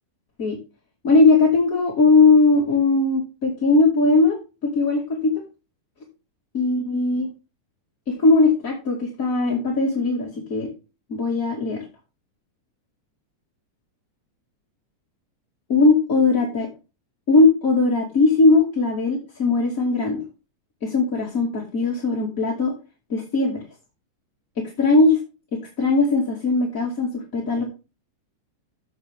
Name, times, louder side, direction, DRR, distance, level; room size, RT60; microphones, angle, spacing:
voice 1, 1.0-4.3 4.6-5.3 6.5-7.3 8.1-10.7 11.1-11.8 15.7-16.7 17.3-20.2 20.8-22.7 23.1-23.6 24.6-25.2 25.5-27.6, left 3 dB, 30° left, -2 dB, 2.3 m, -19 dB
13.5 x 7.6 x 3.6 m, 0.32 s
omnidirectional pair, 3.7 m